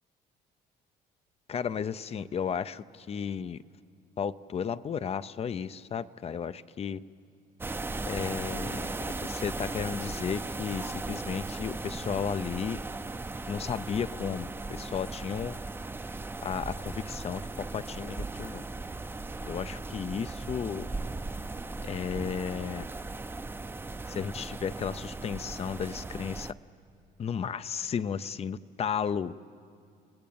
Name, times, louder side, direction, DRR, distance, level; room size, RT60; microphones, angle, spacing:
voice 1, 1.5-3.6 4.2-7.0 8.1-8.9 9.2-12.8 13.5-15.6 16.4-18.6 19.4-20.9 21.8-22.9 24.1-26.5 27.2-29.3, left 7 dB, 35° left, 14 dB, 0.6 m, -34 dB
sound 1, 7.6-26.5, right 3 dB, 15° right, 0.6 m, -37 dB
29.5 x 19.5 x 8.8 m, 2.4 s
cardioid pair, 110°, 17 cm